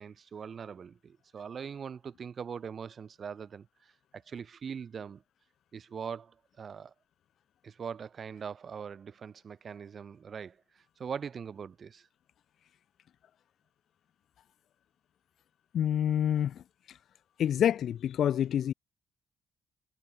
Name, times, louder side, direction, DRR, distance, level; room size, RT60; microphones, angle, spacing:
voice 1, 0.0-5.2 5.7-6.9 7.6-10.6 11.0-12.1, right 6 dB, 50° right, 4.2 m, -41 dB
voice 2, 15.7-16.6 17.4-18.7, left 10 dB, 65° left, 0.3 m, -27 dB
cardioid pair, 90°, 0 cm